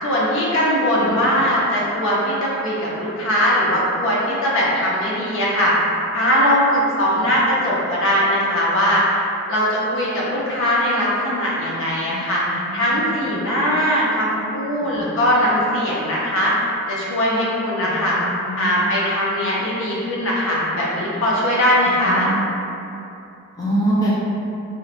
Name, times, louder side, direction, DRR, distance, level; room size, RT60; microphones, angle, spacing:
voice 1, 0.0-5.7 6.1-18.2 18.5-22.3, equal, 65° left, -6 dB, 0.6 m, -20 dB
voice 2, 1.0-1.3 7.1-7.2 12.0-13.0 14.8-15.1 17.8-18.8 21.9-22.4 23.6-24.1, right 1 dB, 15° left, -9 dB, 0.4 m, -26 dB
3.0 x 2.1 x 2.4 m, 2.7 s
head